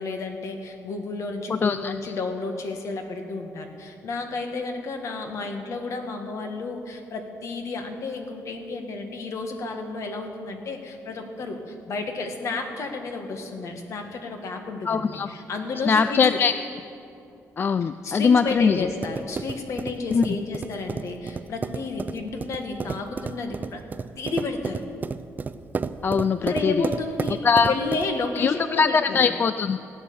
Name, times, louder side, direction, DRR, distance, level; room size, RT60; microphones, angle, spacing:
voice 1, 0.0-16.4 18.0-23.8 24.2-24.8 26.4-29.3, left 3 dB, 60° left, 4 dB, 1.8 m, -32 dB
voice 2, 1.6-1.9 14.9-15.3 15.9-16.5 17.6-18.8 20.1-20.3 26.0-26.7 27.4-27.7 28.4-29.8, left 5 dB, 35° left, 12 dB, 0.3 m, -21 dB
sound 1, 18.5-28.3, right 5 dB, 30° right, 0.5 m, -33 dB
16.0 x 9.3 x 6.9 m, 2.6 s
cardioid pair, 120°, 6 cm